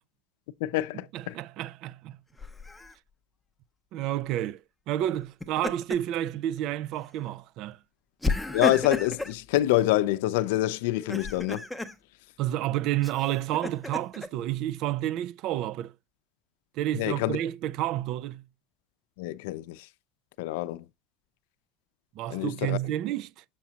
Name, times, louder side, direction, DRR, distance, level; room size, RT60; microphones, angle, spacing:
voice 1, 0.6-1.3 8.5-11.6 17.0-17.4 19.2-19.8 20.4-20.8 22.3-22.8, left 16 dB, 85° left, 0.5 m, -26 dB
voice 2, 1.1-2.2 3.9-7.8 12.4-15.9 16.8-18.4 22.2-23.4, right 13 dB, 50° right, 0.3 m, -30 dB
Laughter, 2.4-2.9 5.2-6.2 6.6-6.7 8.2-9.4 10.9-11.9 13.0-14.3, left 2 dB, 5° left, 0.7 m, -32 dB
7.3 x 5.8 x 2.8 m
cardioid pair, 160°, 0 cm